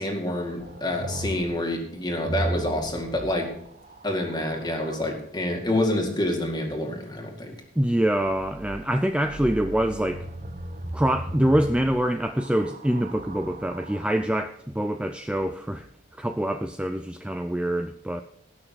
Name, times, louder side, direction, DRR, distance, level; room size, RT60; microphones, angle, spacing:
voice 1, 0.0-3.5 4.0-7.5, left 1 dB, 20° left, 2 dB, 2.2 m, -27 dB
sound 1, 0.6-5.2 8.2-14.3 15.3-15.9, right 1 dB, 40° right, 0.9 m, -37 dB
voice 2, 7.8-10.2 10.9-15.9 16.2-18.2, right 1 dB, 5° right, 6 dB, 0.4 m, -25 dB
18.5 x 6.3 x 4.7 m, 0.70 s
head